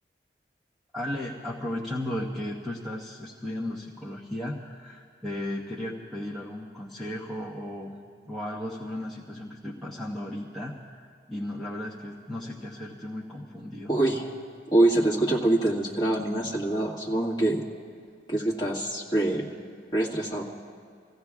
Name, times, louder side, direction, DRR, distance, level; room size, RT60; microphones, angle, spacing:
voice 1, 0.9-8.0 8.2-13.9, left 1 dB, ahead, -7 dB, 0.9 m, -35 dB
voice 2, 13.9-14.3 14.7-17.6 18.3-19.4 19.9-20.4, right 1 dB, 25° left, -5 dB, 1.8 m, -24 dB
28.5 x 15.5 x 2.4 m, 2.1 s
head